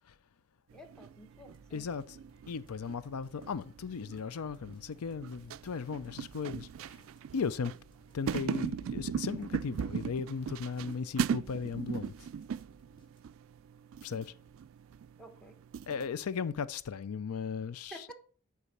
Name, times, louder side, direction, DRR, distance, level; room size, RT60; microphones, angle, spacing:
voice 1, 0.7-1.9 15.2-15.5 17.9-18.1, equal, 5° left, 1.3 m, -50 dB
sound 1, 0.7-16.1, right 7 dB, 65° right, 0.3 m, -39 dB
sound 2, 1.4-13.6, equal, 20° left, 1.8 m, -64 dB
voice 2, 1.7-2.2 2.5-7.0 7.3-7.7 8.1-12.1 14.0-14.3 15.9-18.1, left 5 dB, 90° left, 0.5 m, -36 dB
8.2 x 4.8 x 7.1 m
head